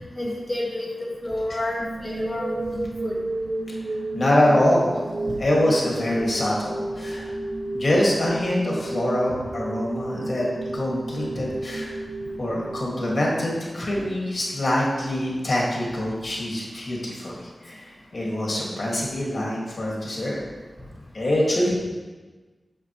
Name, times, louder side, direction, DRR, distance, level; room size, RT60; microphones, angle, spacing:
voice 1, 0.2-0.8 1.2-3.1, left 1 dB, 10° left, -5 dB, 1.5 m, -29 dB
sound 1, 1.8-13.8, right 2 dB, 45° right, 0.6 m, -32 dB
voice 2, 3.7-5.0 5.4-7.3 7.7-10.5 10.7-12.0 12.4-20.4 21.1-21.8, left 1 dB, 50° left, -4 dB, 2.1 m, -24 dB
8.1 x 6.7 x 3.1 m, 1.3 s
wide cardioid pair, 65°, 0 cm